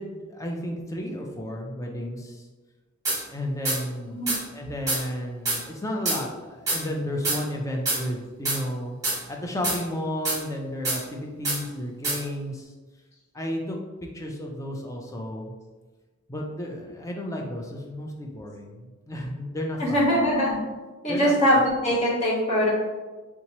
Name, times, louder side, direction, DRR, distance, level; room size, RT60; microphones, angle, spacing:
voice 1, 0.0-2.4 3.3-4.2 4.5-8.9 9.3-12.7 13.3-13.8 14.1-15.6 16.3-20.1 21.1-21.3, equal, 15° left, 0 dB, 0.4 m, -32 dB
sound 1, 3.0-3.2 3.6-3.8 4.3-4.4 4.9-5.0 5.4-5.6 6.0-6.2 6.7-6.8 7.2-7.4 7.9-8.0 8.4-8.6 9.0-9.2 9.6-9.8 10.2-10.4 10.8-11.0 11.4-11.6 12.0-12.2, right 2 dB, 15° right, 1.5 m, -25 dB
voice 2, 19.8-20.6 21.0-22.7, equal, 30° left, -6 dB, 0.9 m, -22 dB
3.4 x 2.9 x 2.9 m, 1.3 s
head